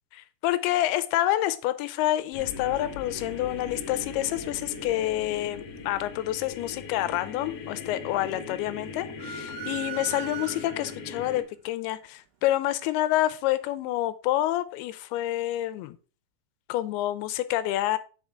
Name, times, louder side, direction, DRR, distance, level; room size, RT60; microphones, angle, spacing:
voice 1, 0.1-16.0 16.7-18.0, left 14 dB, 85° left, 2.5 m, -28 dB
sound 1, 2.3-11.4, left 4 dB, 65° left, 1.5 m, -40 dB
sound 2, 9.2-11.0, right 9 dB, 75° right, 2.0 m, -38 dB
8.5 x 5.0 x 3.6 m
omnidirectional pair, 4.6 m